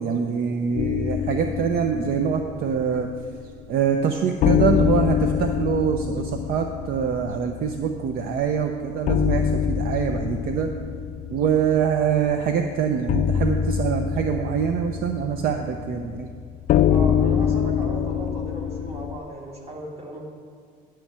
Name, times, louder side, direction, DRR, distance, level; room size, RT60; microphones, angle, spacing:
voice 1, 0.0-3.1 3.7-10.7 11.3-16.3, right 7 dB, 65° right, 6 dB, 0.5 m, -24 dB
sound 1, 0.8-3.6 3.9-4.0 4.4-19.2, left 8 dB, 55° left, 0.4 m, -25 dB
voice 2, 16.9-20.2, right 1 dB, 35° right, -1 dB, 1.9 m, -36 dB
10.5 x 4.5 x 7.3 m, 2.1 s
cardioid pair, 110°, 17 cm